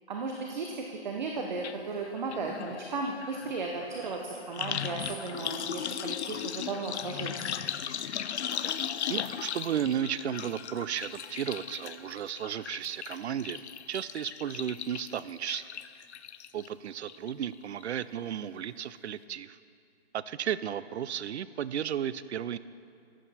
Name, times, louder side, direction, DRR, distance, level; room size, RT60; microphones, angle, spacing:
voice 1, 0.1-7.5, right 3 dB, 45° right, 1 dB, 0.8 m, -35 dB
sound 1, 1.6-1.7 2.0-16.7 17.1-17.5 17.8-17.9, left 9 dB, 85° left, 0.6 m, -37 dB
voice 2, 9.1-15.6 16.5-19.6 20.1-22.6, right 9 dB, 80° right, 16 dB, 0.5 m, -34 dB
13.5 x 9.0 x 4.2 m, 2.4 s
hypercardioid pair, 175°, 33 cm